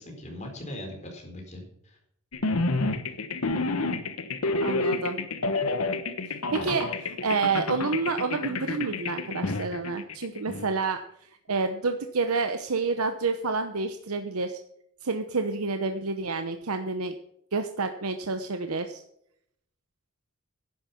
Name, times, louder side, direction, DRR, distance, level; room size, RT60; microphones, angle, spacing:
voice 1, 0.0-2.0 6.6-6.7, left 1 dB, 35° left, 2 dB, 4.2 m, -40 dB
sound 1, 2.3-10.7, left 3 dB, 80° left, 1.3 m, -29 dB
voice 2, 4.6-5.2 6.5-6.9 7.2-11.0 11.5-14.6 15.0-17.1 17.5-19.0, right 4 dB, 90° right, 7 dB, 0.9 m, -28 dB
11.0 x 10.5 x 5.9 m, 0.72 s
head